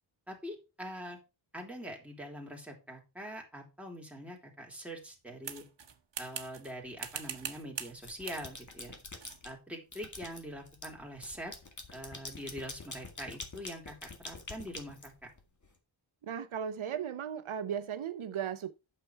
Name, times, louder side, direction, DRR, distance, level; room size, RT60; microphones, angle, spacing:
voice 1, 0.3-1.2 1.5-5.6 6.2-8.9 9.4-11.5 11.9-15.1, equal, 5° right, 3.2 m, -44 dB
sound 1, 5.4-6.7 7.0-8.0 8.2-8.5 9.2-9.4, right 7 dB, 60° right, 1.3 m, -41 dB
sound 2, 7.0-7.6 7.9-9.5 9.9-15.7, left 3 dB, 40° left, 2.0 m, -46 dB
voice 2, 16.2-18.7, right 8 dB, 80° right, 0.8 m, -36 dB
8.9 x 6.9 x 4.5 m
wide cardioid pair, 115°, 47 cm